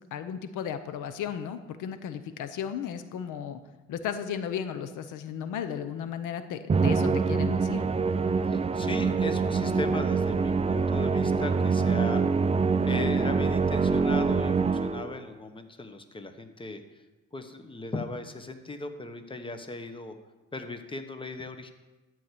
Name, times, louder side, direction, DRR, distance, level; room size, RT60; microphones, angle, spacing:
voice 1, 0.0-3.6 3.9-7.8, left 8 dB, 85° left, 10 dB, 0.8 m, -35 dB
Musical instrument, 6.7-15.2, right 5 dB, 20° right, 0.5 m, -25 dB
voice 2, 8.5-12.2 12.8-16.8 17.3-20.2 20.5-21.7, left 2 dB, 15° left, 7 dB, 1.1 m, -37 dB
13.0 x 4.7 x 8.4 m, 1.1 s
cardioid pair, 90°, 30 cm